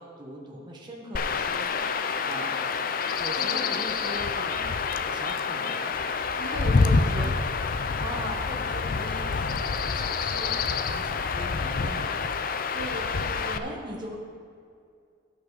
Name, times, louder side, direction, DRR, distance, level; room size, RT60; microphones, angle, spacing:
voice 1, 0.0-1.7 2.2-2.7 3.2-5.9 6.8-7.3 8.0-12.2 13.6-14.2, right 1 dB, 20° right, -3 dB, 1.3 m, -40 dB
Chirp tweet / Wind / Stream, 1.1-13.6, left 5 dB, 45° left, 0.4 m, -27 dB
voice 2, 3.3-3.7 6.4-7.3 12.7-13.8, right 1 dB, 55° right, 0 dB, 1.2 m, -37 dB
16.5 x 5.8 x 4.0 m, 2.3 s
head